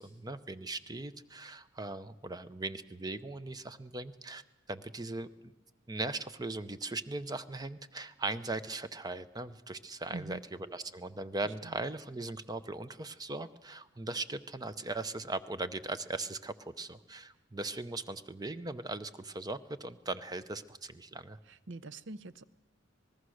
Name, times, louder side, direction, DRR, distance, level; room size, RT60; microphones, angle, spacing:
voice 1, 0.0-4.4 4.7-5.5 5.9-10.4 10.7-21.4, right 2 dB, 20° right, 12 dB, 0.7 m, -39 dB
voice 2, 10.1-10.4 11.4-11.8 21.4-22.4, right 2 dB, 60° right, 16 dB, 0.7 m, -44 dB
26.0 x 19.5 x 6.4 m, 1.0 s
head